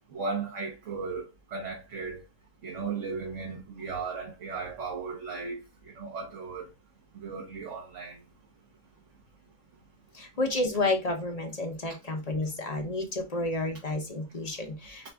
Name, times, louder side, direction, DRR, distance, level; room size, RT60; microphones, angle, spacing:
voice 1, 0.1-1.2 1.5-2.2 2.6-5.6 5.9-6.7 7.1-8.2, right 4 dB, 60° right, 1.3 m, -36 dB
voice 2, 10.1-15.1, left 2 dB, 40° left, 0.6 m, -31 dB
4.9 x 2.4 x 3.3 m
omnidirectional pair, 1.5 m